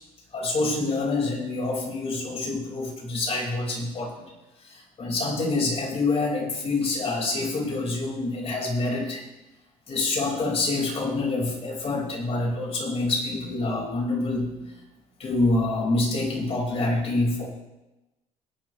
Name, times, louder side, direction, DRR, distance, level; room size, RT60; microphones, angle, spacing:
voice 1, 0.3-4.3 4.7-9.2 9.9-14.7 15.2-17.5, left 2 dB, 40° left, -1 dB, 5.2 m, -26 dB
24.0 x 9.4 x 3.3 m, 1.0 s
cardioid pair, 95°, 15 cm